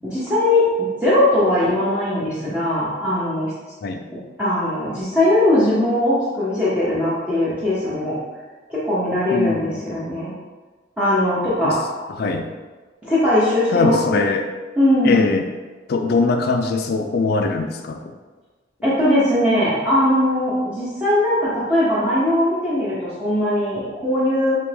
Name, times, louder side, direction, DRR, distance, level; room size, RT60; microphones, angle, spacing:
voice 1, 0.0-3.5 4.4-8.2 8.7-10.3 11.0-11.8 13.0-14.2 14.8-15.3 18.8-24.6, left 1 dB, 5° right, -10 dB, 0.7 m, -20 dB
voice 2, 9.3-9.8 11.6-11.8 12.1-12.5 13.7-14.5 15.0-15.5 15.9-18.1, left 3 dB, 55° left, 5 dB, 0.4 m, -21 dB
3.4 x 2.9 x 3.2 m, 1.3 s
head